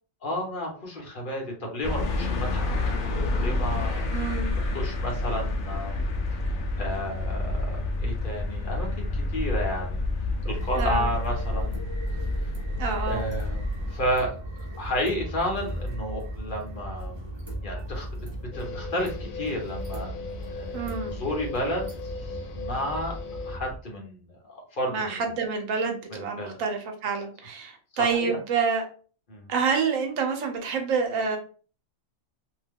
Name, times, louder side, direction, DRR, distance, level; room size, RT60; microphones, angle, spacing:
voice 1, 0.2-4.1 4.6-6.0 6.8-10.0 10.4-11.7 12.1-12.5 13.0-14.4 14.8-17.3 17.6-18.1 18.4-20.1 20.5-23.2 23.5-25.2 26.1-26.6 27.9-28.4 29.3-29.5, equal, 45° left, 0 dB, 1.0 m, -32 dB
sound 1, 1.8-13.9, left 2 dB, 70° left, 0.5 m, -29 dB
voice 2, 4.1-4.8 10.8-11.1 12.8-13.2 20.7-21.2 24.9-28.9 29.5-31.4, right 5 dB, 80° right, 4 dB, 1.1 m, -28 dB
sound 2, 10.4-23.8, equal, 35° right, 0.4 m, -37 dB
sound 3, 18.5-23.6, left 4 dB, 85° left, 1.0 m, -38 dB
2.7 x 2.2 x 3.5 m, 0.40 s
omnidirectional pair, 1.4 m